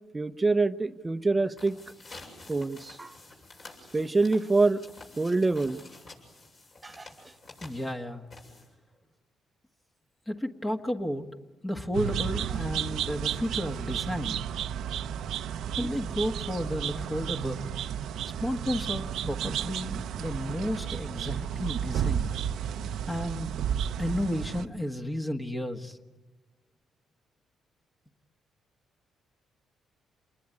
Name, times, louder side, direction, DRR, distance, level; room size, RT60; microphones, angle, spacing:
voice 1, 0.1-1.8 2.5-3.1 3.9-4.8 5.2-5.8 6.8-7.1, right 3 dB, 20° right, 12 dB, 0.9 m, -25 dB
sound 1, 1.4-8.9, left 2 dB, 45° left, 7.5 m, -49 dB
voice 2, 7.6-8.2 10.3-11.3 11.6-14.4 15.8-17.7 18.4-22.3 23.1-23.5 24.0-26.0, equal, 15° left, 4 dB, 1.6 m, -32 dB
sound 2, 11.9-24.7, right 9 dB, 80° right, 0.8 m, -32 dB
28.5 x 20.5 x 9.8 m, 1.2 s
cardioid pair, 90°, 0 cm